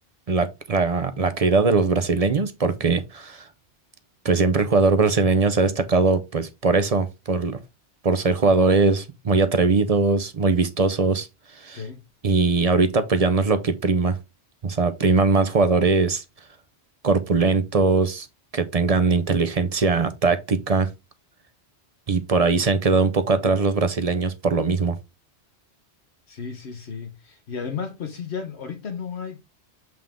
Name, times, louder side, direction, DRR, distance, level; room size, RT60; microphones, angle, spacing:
voice 1, 0.3-3.4 4.2-7.6 8.0-11.3 11.6-11.8 12.2-14.2 14.6-16.2 17.0-18.3 18.5-20.9 22.1-25.0, right 4 dB, 40° right, 0.6 m, -21 dB
voice 2, 26.3-29.4, left 6 dB, 75° left, 1.2 m, -33 dB
7.6 x 3.6 x 3.6 m
omnidirectional pair, 1.1 m